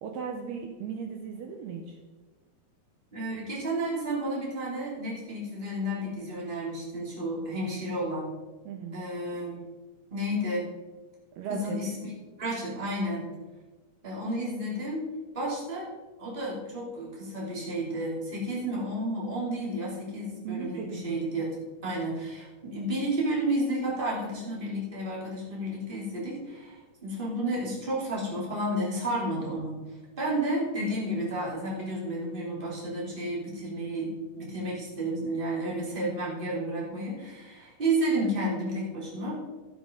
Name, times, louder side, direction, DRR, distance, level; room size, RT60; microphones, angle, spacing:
voice 1, 0.0-2.0 8.7-9.0 11.4-11.8 20.4-21.2, right 6 dB, 75° right, 3 dB, 2.7 m, -37 dB
voice 2, 3.1-8.3 8.9-9.6 10.1-10.7 11.6-12.1 12.4-13.3 14.0-15.1 15.3-21.5 21.8-39.4, right 1 dB, 15° right, -5 dB, 2.6 m, -31 dB
13.5 x 7.4 x 5.2 m, 1.3 s
omnidirectional pair, 5.0 m